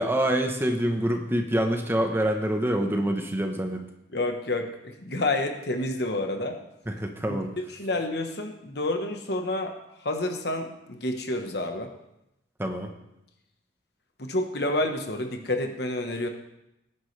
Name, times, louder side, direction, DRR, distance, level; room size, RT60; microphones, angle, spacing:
voice 1, 0.0-3.8 6.9-7.5 12.6-12.9, right 1 dB, 10° right, 4 dB, 1.0 m, -26 dB
voice 2, 4.1-6.6 7.3-7.4 7.7-11.9 14.2-16.3, left 2 dB, 60° left, 5 dB, 1.2 m, -29 dB
18.0 x 10.0 x 3.3 m, 0.88 s
head